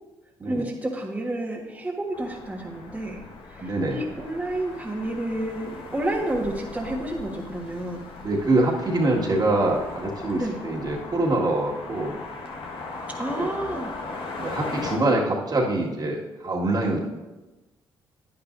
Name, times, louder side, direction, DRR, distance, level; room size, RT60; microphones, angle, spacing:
voice 1, 0.4-3.2 3.5-8.0 10.3-10.6 13.2-14.0, right 1 dB, 15° right, -3 dB, 1.5 m, -30 dB
sound 1, 2.1-15.0, left 3 dB, 65° left, 1.6 m, -38 dB
voice 2, 3.6-4.0 8.2-12.1 13.4-13.5 14.4-17.0, right 2 dB, 40° right, -2 dB, 2.0 m, -24 dB
10.0 x 9.7 x 2.7 m, 1.1 s
supercardioid pair, 60°, 10 cm